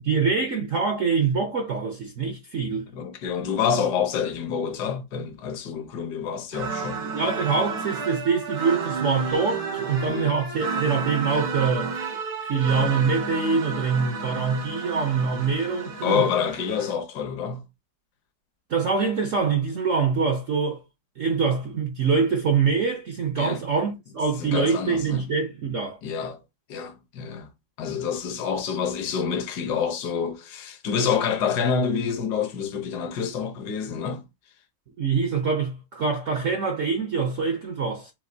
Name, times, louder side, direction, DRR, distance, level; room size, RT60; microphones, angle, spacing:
voice 1, 0.0-2.9 7.0-11.9 12.5-16.2 18.7-20.8 21.2-26.0 35.0-38.1, right 5 dB, 60° right, 0.8 m, -24 dB
voice 2, 2.9-7.0 10.1-10.3 16.0-17.6 23.4-23.6 24.4-25.3 26.0-26.4 26.7-27.5 27.8-34.3, left 7 dB, 60° left, 1.4 m, -27 dB
sound 1, 6.5-16.9, right 4 dB, 85° right, 2.3 m, -31 dB
7.4 x 2.6 x 2.7 m
omnidirectional pair, 2.2 m